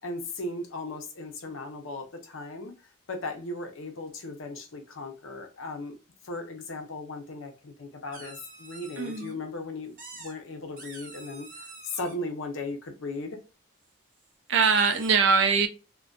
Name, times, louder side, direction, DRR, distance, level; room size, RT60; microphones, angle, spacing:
voice 1, 0.0-2.7 3.1-6.0 6.2-13.4, left 2 dB, 70° left, 0.6 m, -37 dB
sound 1, 8.1-9.3 10.0-10.3 10.8-12.1 14.2-14.3 14.6-15.1, right 3 dB, 40° right, 0.8 m, -46 dB
voice 2, 9.0-9.4 14.5-15.7, right 5 dB, 60° right, 0.4 m, -22 dB
2.6 x 2.2 x 2.2 m
head